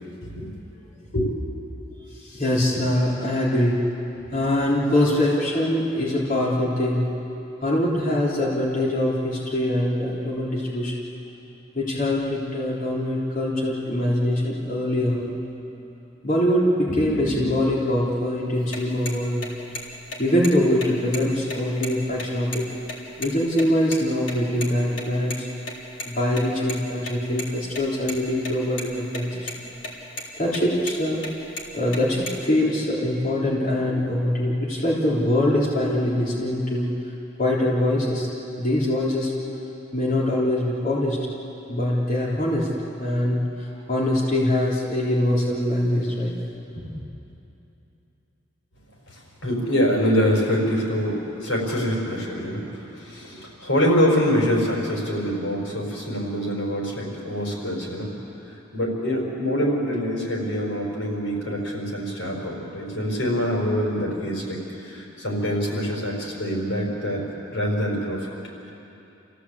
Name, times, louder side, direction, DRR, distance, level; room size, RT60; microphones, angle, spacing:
voice 1, 0.0-0.5 1.1-1.3 49.1-58.1 58.7-67.2 67.5-68.3, equal, 85° left, -1 dB, 5.5 m, -25 dB
voice 2, 2.1-3.9 4.3-7.1 7.6-11.1 11.8-15.3 16.2-19.6 20.2-22.7 23.2-25.5 26.1-29.7 30.4-31.2 31.7-36.9 37.4-38.3 38.6-39.3 39.9-41.2 41.7-46.3 46.7-46.8, left 1 dB, 45° left, -6 dB, 3.6 m, -23 dB
sound 1, 18.6-23.6 23.9-24.0 24.3-24.4 24.6-24.7 25.0-25.1 25.3-25.4 25.7-26.7 27.0-27.5 27.7-28.5 28.8-29.2 29.5-29.9 30.2-30.3 30.5-31.0 31.2-32.4, left 2 dB, 70° left, 3.8 m, -33 dB
28.5 x 16.5 x 8.5 m, 2.9 s
head